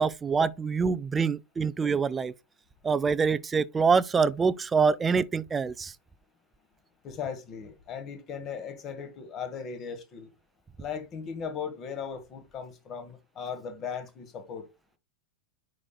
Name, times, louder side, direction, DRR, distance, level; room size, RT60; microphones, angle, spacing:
voice 1, 0.0-2.3 2.8-5.9, right 5 dB, 15° right, 0.4 m, -25 dB
voice 2, 7.0-10.3 10.8-14.6, left 6 dB, 30° left, 1.4 m, -37 dB
9.9 x 4.3 x 2.3 m
figure-of-eight pair, 90°, 0 cm